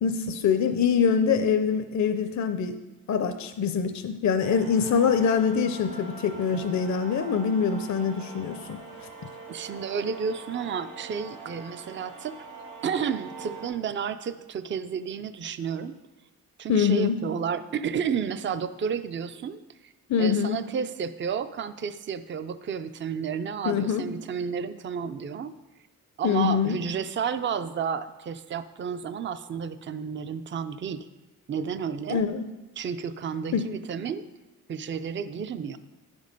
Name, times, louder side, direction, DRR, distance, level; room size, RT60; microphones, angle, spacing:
voice 1, 0.0-2.8 3.1-8.8 16.7-17.2 20.1-20.6 23.6-24.1 26.2-26.8 32.1-32.5 33.5-33.6, left 6 dB, 55° left, 8 dB, 0.5 m, -24 dB
sound 1, 4.4-13.7, right 3 dB, 80° right, 2.4 m, -43 dB
voice 2, 9.5-12.3 12.8-16.0 16.6-19.9 20.2-25.5 26.2-31.1 31.5-32.2 32.8-34.2 34.7-35.8, right 7 dB, 35° right, 12 dB, 0.4 m, -31 dB
10.5 x 5.3 x 5.2 m, 1.1 s
wide cardioid pair, 105°, 34 cm